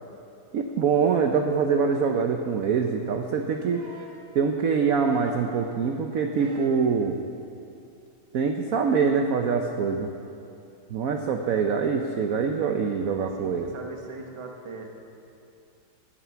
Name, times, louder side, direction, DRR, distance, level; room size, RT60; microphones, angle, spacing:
voice 1, 0.5-3.8 4.3-7.2 8.3-10.1 10.9-13.7, right 5 dB, 65° right, 4 dB, 0.8 m, -24 dB
sound 1, 3.7-4.2 5.0-5.6 6.3-6.8 8.1-8.2, right 1 dB, 45° right, 1.7 m, -44 dB
voice 2, 13.4-14.9, right 3 dB, 20° right, 1 dB, 0.8 m, -40 dB
13.0 x 9.2 x 7.1 m, 2.6 s
omnidirectional pair, 2.2 m